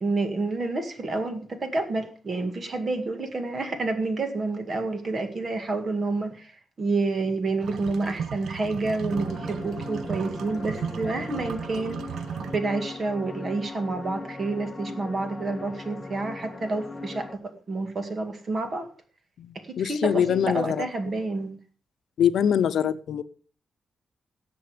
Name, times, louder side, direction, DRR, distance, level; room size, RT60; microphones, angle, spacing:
voice 1, 0.0-6.5 6.8-12.0 12.4-17.4 17.7-18.9 19.8-21.6, right 3 dB, 35° right, 8 dB, 2.0 m, -29 dB
sound 1, 7.6-12.6, right 7 dB, 85° right, 0.6 m, -35 dB
sound 2, 9.1-17.4, left 3 dB, 20° left, 1.2 m, -39 dB
voice 2, 19.4-20.9 22.2-23.2, left 8 dB, 80° left, 12 dB, 0.7 m, -24 dB
17.5 x 6.9 x 5.1 m, 0.40 s
wide cardioid pair, 145°, 0 cm